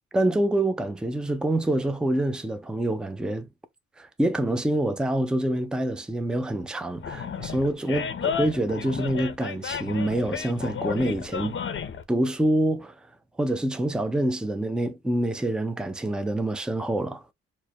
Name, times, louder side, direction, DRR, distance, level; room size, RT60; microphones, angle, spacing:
voice 1, 0.1-3.5 4.0-11.6 12.1-13.0 13.4-17.2, right 1 dB, 5° right, 0.5 m, -26 dB
Animal, 7.0-12.0, left 7 dB, 40° left, 0.7 m, -32 dB
4.5 x 2.2 x 2.8 m
cardioid pair, 90°, 30 cm